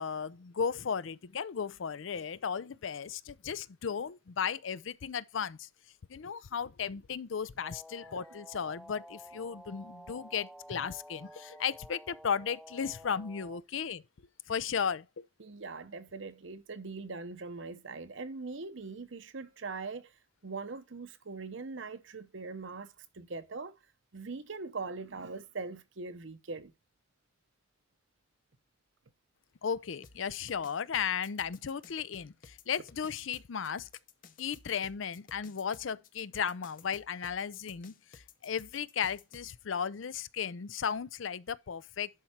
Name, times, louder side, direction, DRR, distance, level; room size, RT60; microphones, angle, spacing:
voice 1, 0.0-5.7 6.1-14.0 14.5-15.2 29.6-33.9 34.4-42.1, left 7 dB, 65° left, 0.5 m, -35 dB
sound 1, 7.6-13.6, equal, ahead, 0.5 m, -51 dB
voice 2, 15.4-20.1 20.4-23.8 24.1-26.7, right 4 dB, 65° right, 0.8 m, -41 dB
sound 2, 30.0-39.5, left 5 dB, 40° left, 0.9 m, -55 dB
11.0 x 4.6 x 4.3 m
head